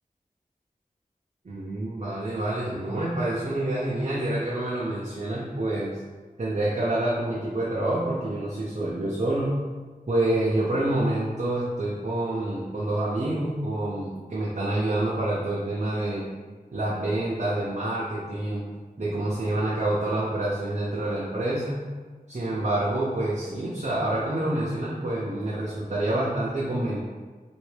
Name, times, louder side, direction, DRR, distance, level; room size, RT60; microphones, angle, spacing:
voice 1, 1.4-6.0 6.4-9.5 10.1-16.3 16.7-18.6 19.0-21.8 22.3-27.0, right 1 dB, 50° right, -6 dB, 0.7 m, -27 dB
3.4 x 2.7 x 3.3 m, 1.4 s
wide cardioid pair, 50°, 15 cm